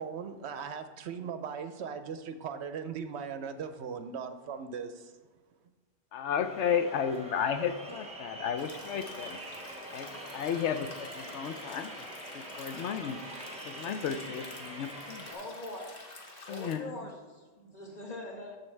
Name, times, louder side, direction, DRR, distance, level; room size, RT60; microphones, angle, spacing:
voice 1, 0.0-5.1, right 6 dB, 70° right, 9 dB, 0.8 m, -38 dB
voice 2, 6.1-9.4 9.9-12.1 12.3-13.2 13.7-15.3 16.5-16.9, left 7 dB, 75° left, 9 dB, 0.8 m, -33 dB
sound 1, 6.4-15.3, right 1 dB, 5° right, 1.0 m, -44 dB
sound 2, 8.6-16.8, left 2 dB, 50° left, 1.2 m, -49 dB
voice 3, 15.3-16.0 16.5-18.6, left 1 dB, 35° left, -1 dB, 1.6 m, -43 dB
13.0 x 4.4 x 3.3 m, 1.4 s
omnidirectional pair, 1.3 m